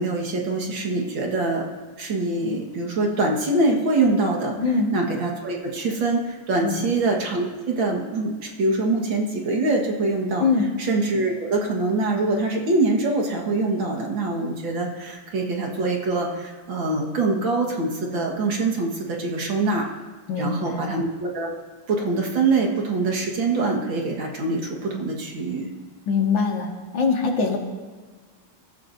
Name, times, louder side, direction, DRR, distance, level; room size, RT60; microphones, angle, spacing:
voice 1, 0.0-1.7 2.0-4.6 4.9-10.5 10.8-19.9 20.4-21.5 21.9-25.7, right 2 dB, 60° right, 0 dB, 2.3 m, -24 dB
voice 2, 4.6-4.9 6.6-6.9 10.4-10.7 20.3-20.8 26.1-27.6, left 4 dB, 60° left, 2 dB, 2.3 m, -23 dB
24.0 x 14.0 x 2.7 m, 1.4 s
omnidirectional pair, 2.4 m